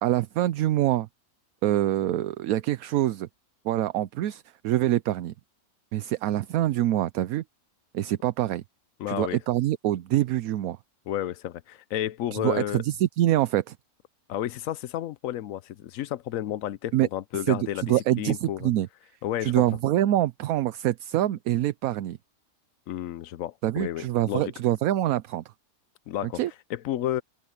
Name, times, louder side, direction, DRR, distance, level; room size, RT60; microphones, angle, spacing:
voice 1, 0.0-1.1 1.6-3.3 3.6-5.3 5.9-7.4 7.9-8.6 9.1-10.8 12.3-13.8 16.9-17.1 17.5-18.9 19.4-22.2 23.6-25.4 26.3-26.5, right 13 dB, 75° right, 1.0 m, -25 dB
voice 2, 9.0-9.4 11.1-12.8 14.3-18.7 19.2-19.6 22.9-24.5 26.1-26.4 26.7-27.2, left 12 dB, 70° left, 1.0 m, -31 dB
open air
omnidirectional pair, 1.6 m